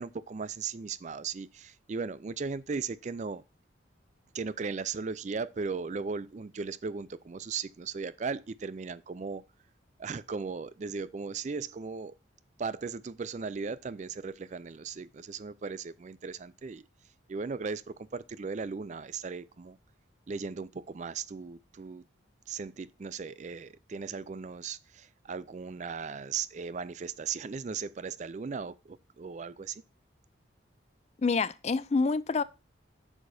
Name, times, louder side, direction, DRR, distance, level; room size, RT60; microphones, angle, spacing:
voice 1, 0.0-3.4 4.3-9.4 10.0-12.2 12.6-16.8 17.3-19.8 20.3-22.0 22.5-29.8, right 5 dB, 35° right, 0.4 m, -37 dB
voice 2, 31.2-32.4, left 4 dB, 35° left, 0.3 m, -27 dB
8.9 x 6.6 x 2.6 m
head